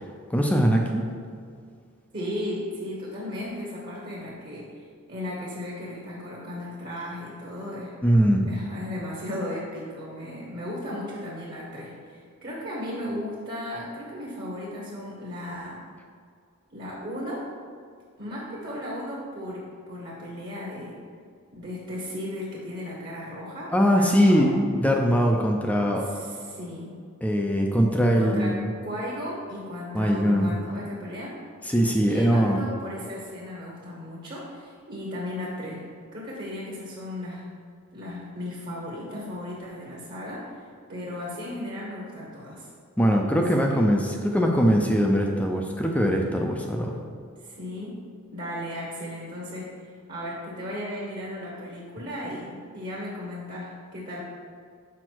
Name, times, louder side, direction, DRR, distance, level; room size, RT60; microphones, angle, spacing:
voice 1, 0.3-1.0 8.0-8.5 23.7-26.1 27.2-28.7 29.9-30.5 31.7-32.6 43.0-47.0, equal, 5° left, 1 dB, 0.4 m, -21 dB
voice 2, 2.1-8.0 8.5-15.8 16.7-17.4 18.2-21.0 21.5-24.5 26.0-27.0 28.2-28.6 28.8-31.3 32.0-35.8 36.1-37.5 37.9-42.7 43.5-43.6 47.4-48.0 48.3-54.2, left 1 dB, 40° right, -5 dB, 1.1 m, -35 dB
6.3 x 4.9 x 4.5 m, 2.1 s
head